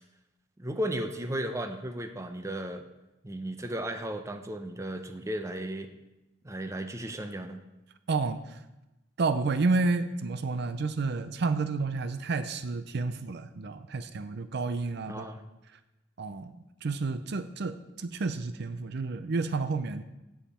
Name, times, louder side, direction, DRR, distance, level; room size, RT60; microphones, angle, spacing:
voice 1, 0.6-2.8 3.2-5.9 6.4-7.6 15.1-15.4, right 1 dB, 15° right, 7 dB, 0.7 m, -35 dB
voice 2, 8.1-8.6 9.2-15.3 16.2-16.5 16.8-20.0, right 3 dB, 60° right, 11 dB, 0.5 m, -30 dB
16.5 x 7.3 x 4.3 m, 0.98 s
head